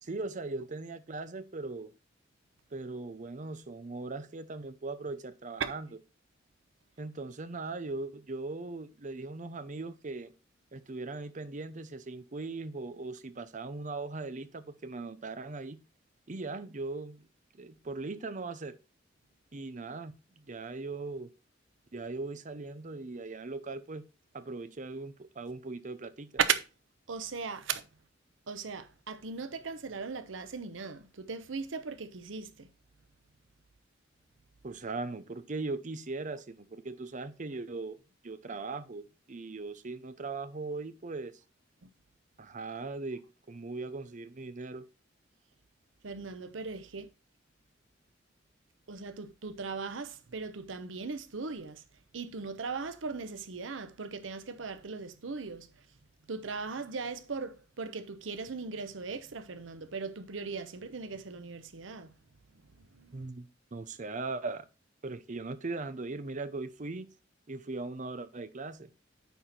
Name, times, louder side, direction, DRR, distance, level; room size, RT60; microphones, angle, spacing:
voice 1, 0.0-1.9 2.7-5.9 7.0-10.3 10.7-15.8 16.3-17.2 17.5-18.8 19.5-21.3 21.9-24.0 24.3-26.3 34.6-38.0 38.2-41.4 42.4-44.9 63.1-64.7 65.0-67.1 67.5-68.9, right 3 dB, 40° right, 0.7 m, -39 dB
voice 2, 27.1-27.8 28.5-32.7 46.0-47.1 48.9-51.8 52.1-55.7 56.3-62.1 62.9-63.3, right 5 dB, 85° right, 0.8 m, -37 dB
9.2 x 4.3 x 4.3 m
head